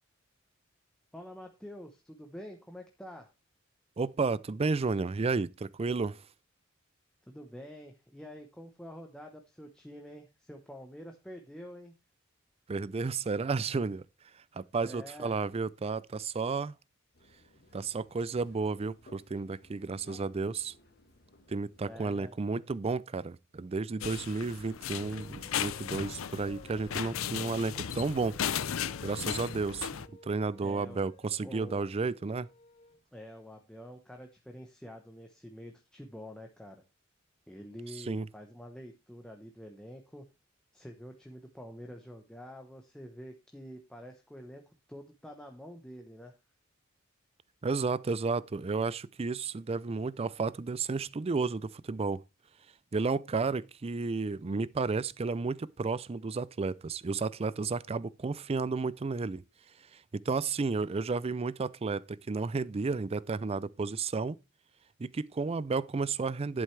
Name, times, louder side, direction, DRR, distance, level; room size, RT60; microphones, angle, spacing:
voice 1, 1.1-3.3 7.3-11.9 14.8-15.4 21.8-22.4 30.6-31.1 31.4-31.9 33.1-36.8 37.5-40.2 40.7-44.6 44.9-46.4, equal, 5° left, 0.9 m, -47 dB
voice 2, 4.0-6.2 12.7-14.0 14.5-16.7 17.7-20.7 21.5-28.4 29.0-29.9 30.2-32.5 38.1-38.3 47.6-52.2 52.9-59.4 59.9-64.4 65.0-66.6, right 4 dB, 30° right, 0.4 m, -32 dB
sound 1, 17.1-22.3, left 2 dB, 50° left, 1.5 m, -59 dB
sound 2, 24.0-30.1, left 8 dB, 75° left, 0.6 m, -36 dB
sound 3, 24.9-33.0, left 3 dB, 30° left, 0.7 m, -58 dB
11.0 x 8.7 x 3.3 m
head